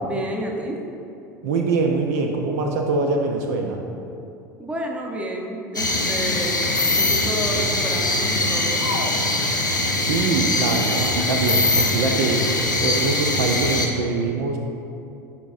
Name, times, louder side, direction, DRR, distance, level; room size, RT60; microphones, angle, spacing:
voice 1, 0.0-0.8 4.6-8.9, right 1 dB, 10° right, 1 dB, 0.8 m, -30 dB
voice 2, 1.4-3.8 10.0-14.6, right 3 dB, 55° right, 2 dB, 0.5 m, -23 dB
sound 1, 5.7-13.9, left 2 dB, 85° left, 0.6 m, -22 dB
10.5 x 4.1 x 2.6 m, 2.7 s
figure-of-eight pair, 75°, 10 cm